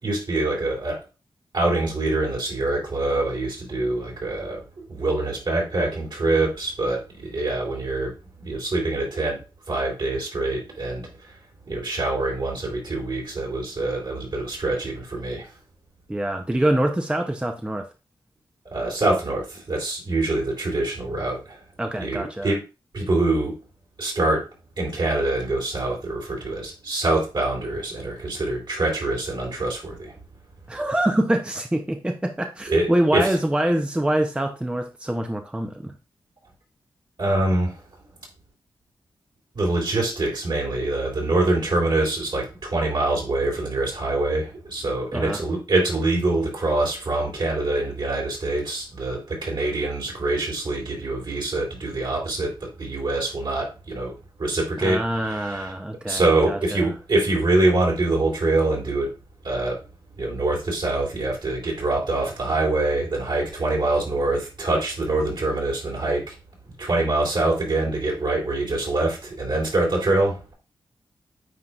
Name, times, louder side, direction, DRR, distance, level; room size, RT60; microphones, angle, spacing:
voice 1, 0.0-1.0 1.5-4.6 4.9-9.4 9.7-11.4 11.7-15.5 18.7-21.6 22.0-22.6 22.9-23.5 24.0-24.5 24.8-30.2 32.7-33.3 37.2-37.8 39.5-54.1 54.4-55.7 56.1-59.1 59.4-59.9 60.2-66.3 66.8-70.5, right 2 dB, 60° right, -2 dB, 3.7 m, -25 dB
voice 2, 16.1-17.9 21.8-22.5 30.7-35.9 45.1-45.4 54.8-56.9, right 1 dB, 10° right, 4 dB, 0.7 m, -25 dB
9.5 x 4.3 x 2.4 m, 0.30 s
cardioid pair, 60°, 9 cm